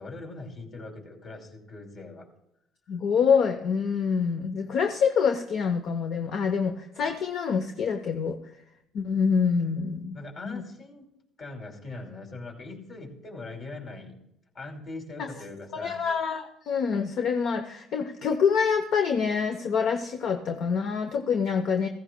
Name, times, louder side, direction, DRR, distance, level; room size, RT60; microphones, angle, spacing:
voice 1, 0.0-2.3 10.1-11.0 11.4-14.2 14.5-16.0, left 2 dB, 40° left, 2 dB, 2.5 m, -41 dB
voice 2, 2.9-8.4 8.9-10.2 10.4-10.6 15.2-15.3 15.7-21.9, left 6 dB, 55° left, 7 dB, 0.7 m, -26 dB
15.0 x 15.0 x 2.2 m, 0.80 s
cardioid pair, 120°, 0 cm